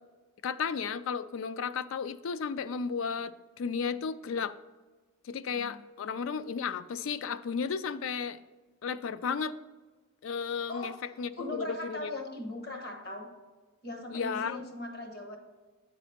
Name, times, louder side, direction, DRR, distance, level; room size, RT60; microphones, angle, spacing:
voice 1, 0.4-4.6 5.2-8.4 8.8-9.5 10.2-10.9 11.2-12.1 14.1-14.6, left 6 dB, 70° left, 14 dB, 0.4 m, -33 dB
voice 2, 10.7-13.3 13.8-15.4, left 2 dB, 50° left, 4 dB, 1.1 m, -39 dB
9.0 x 4.0 x 4.3 m, 1.3 s
head